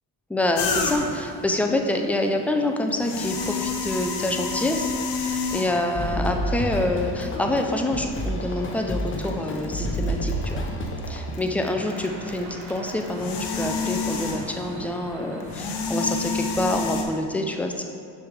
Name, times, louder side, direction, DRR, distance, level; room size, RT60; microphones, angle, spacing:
voice 1, 0.3-4.9 5.2-10.6 11.1-17.8, left 1 dB, 5° left, 3 dB, 0.4 m, -26 dB
sound 1, 0.6-1.3 2.9-6.0 6.8-6.9 8.1-8.3 8.7-11.1 11.3-14.7 15.4-17.0, left 4 dB, 80° left, 0.8 m, -29 dB
sound 2, 5.9-12.0, equal, 30° left, 0.8 m, -30 dB
sound 3, 11.7-17.1, right 2 dB, 80° right, 1.0 m, -42 dB
6.0 x 3.4 x 4.9 m, 2.5 s
cardioid pair, 85°, 41 cm